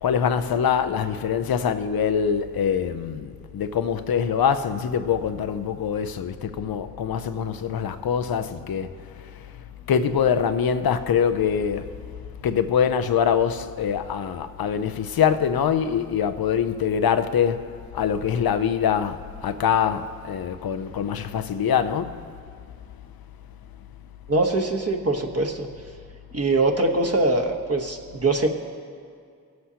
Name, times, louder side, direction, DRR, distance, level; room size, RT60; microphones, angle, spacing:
voice 1, 0.0-22.3, left 7 dB, 85° left, 0.5 m, -24 dB
voice 2, 24.3-25.7 26.3-28.5, right 2 dB, 45° right, 1.2 m, -22 dB
21.0 x 7.7 x 2.8 m
cardioid pair, 45°, 35 cm